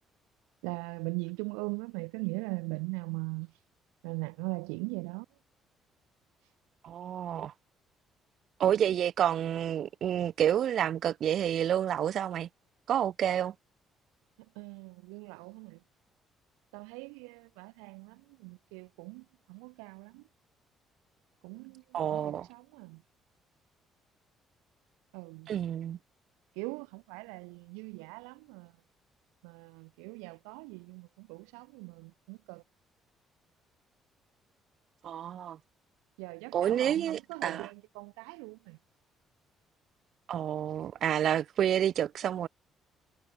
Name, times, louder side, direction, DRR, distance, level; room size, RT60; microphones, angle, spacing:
voice 1, 0.6-3.6 4.0-5.3 6.4-6.5 14.5-15.8 16.7-20.3 21.4-23.0 25.1-25.5 26.5-28.8 29.4-32.6 36.2-38.8, right 37 dB, 80° right, 0.9 m, -40 dB
voice 2, 6.8-7.5 8.6-12.5 12.9-13.5 21.9-22.5 25.5-26.0 35.0-35.6 36.5-37.7 40.3-42.5, right 10 dB, 60° right, 0.5 m, -29 dB
hypercardioid pair, 50°, 0 cm